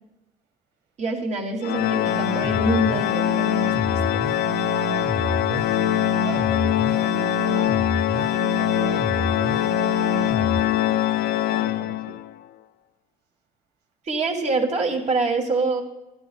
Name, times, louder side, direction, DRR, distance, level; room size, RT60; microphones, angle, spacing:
voice 1, 1.0-4.2 14.0-15.8, right 3 dB, 40° right, 0 dB, 2.5 m, -26 dB
Organ, 1.6-12.3, left 13 dB, 65° left, 0.4 m, -23 dB
sound 1, 2.1-10.6, right 2 dB, ahead, 1.0 m, -30 dB
voice 2, 5.2-7.8 8.1-12.2, right 6 dB, 85° right, 4 dB, 1.8 m, -40 dB
16.5 x 12.5 x 2.3 m, 1.0 s
cardioid pair, 110°, 17 cm